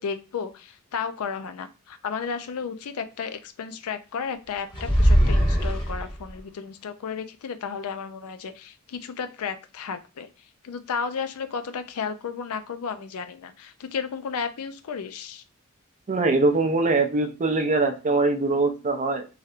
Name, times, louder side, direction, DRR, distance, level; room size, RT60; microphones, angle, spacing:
voice 1, 0.0-15.4, left 6 dB, 80° left, 10 dB, 0.4 m, -33 dB
sound 1, 4.7-6.4, equal, 20° left, 0.8 m, -20 dB
voice 2, 16.1-19.3, right 3 dB, 35° right, 6 dB, 0.5 m, -22 dB
3.2 x 2.7 x 2.4 m, 0.31 s
head